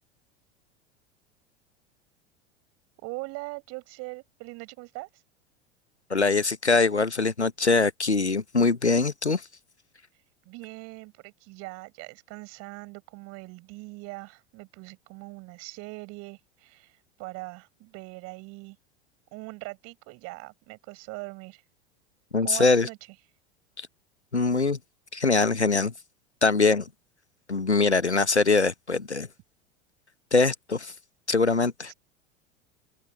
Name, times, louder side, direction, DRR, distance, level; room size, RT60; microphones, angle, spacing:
voice 1, 3.0-5.1 10.5-18.8 19.3-21.6 22.4-23.0 31.9-32.0, right 25 dB, 45° right, 5.6 m, -41 dB
voice 2, 6.1-9.4 22.3-22.9 24.3-24.8 25.1-25.9 26.4-26.8 27.5-29.3 30.3-30.9 31.3-31.9, left 3 dB, 90° left, 1.2 m, -23 dB
open air
figure-of-eight pair, 80°, 33 cm